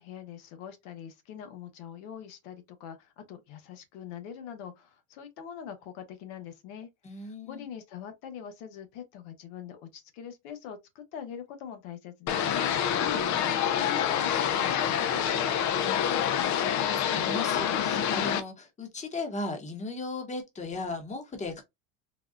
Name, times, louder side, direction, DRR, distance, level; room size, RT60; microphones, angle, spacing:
voice 1, 0.0-6.9 7.1-12.7 13.8-16.7, left 8 dB, 75° left, 1.1 m, -43 dB
voice 2, 7.0-7.7 12.9-13.6 16.8-21.6, left 3 dB, 20° left, 1.0 m, -37 dB
sound 1, 12.3-18.4, left 9 dB, 45° left, 0.6 m, -27 dB
4.0 x 2.3 x 2.4 m
cardioid pair, 130°, 39 cm